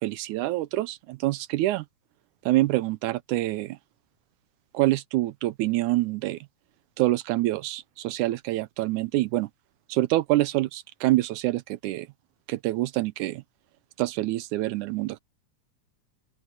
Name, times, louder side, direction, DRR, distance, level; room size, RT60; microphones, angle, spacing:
voice 1, 0.0-1.8 2.5-3.8 4.7-6.4 7.0-9.5 9.9-12.1 12.5-13.4 14.0-15.2, right 17 dB, 80° right, 2.0 m, -26 dB
open air
omnidirectional pair, 3.6 m